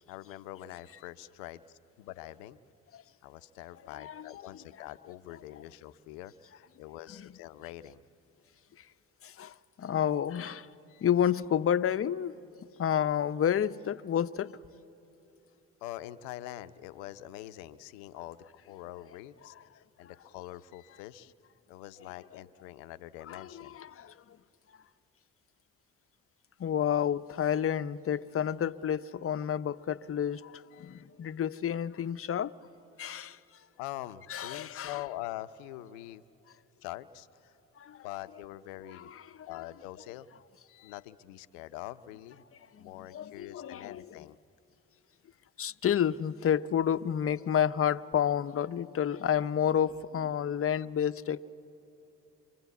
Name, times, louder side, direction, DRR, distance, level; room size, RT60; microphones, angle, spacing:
voice 1, 0.1-2.6 3.2-8.0 10.9-11.1 15.8-21.3 21.7-23.8 30.7-31.0 33.8-36.2 36.8-37.6 38.0-39.1 39.4-40.3 40.7-42.4 42.8-44.4 50.7-50.9, left 15 dB, 85° left, 0.6 m, -44 dB
voice 2, 3.9-4.3 7.2-7.3 9.2-10.7 11.0-12.3 12.8-14.6 23.3-24.4 26.6-32.6 33.0-33.4 34.3-35.0 37.8-38.1 38.9-39.5 42.7-44.2 45.6-51.5, left 9 dB, 40° left, 0.7 m, -30 dB
25.0 x 23.5 x 8.3 m
hypercardioid pair, 45°, 36 cm